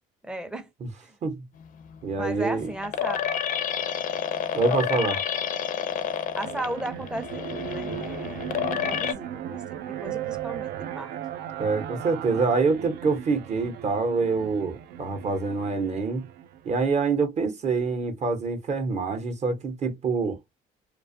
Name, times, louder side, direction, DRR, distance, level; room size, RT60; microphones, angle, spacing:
voice 1, 0.2-0.7 1.0-1.1 2.2-3.2 4.7-5.2 6.1-9.6 10.0-11.1, right 1 dB, 5° right, 0.5 m, -36 dB
sound 1, 1.6-9.1, left 8 dB, 55° left, 0.5 m, -30 dB
voice 2, 2.0-2.7 4.5-5.2 11.6-16.2 16.6-20.4, right 4 dB, 40° right, 0.7 m, -26 dB
sound 2, 6.4-16.9, right 11 dB, 70° right, 0.4 m, -37 dB
2.4 x 2.2 x 2.5 m
cardioid pair, 110°, 17 cm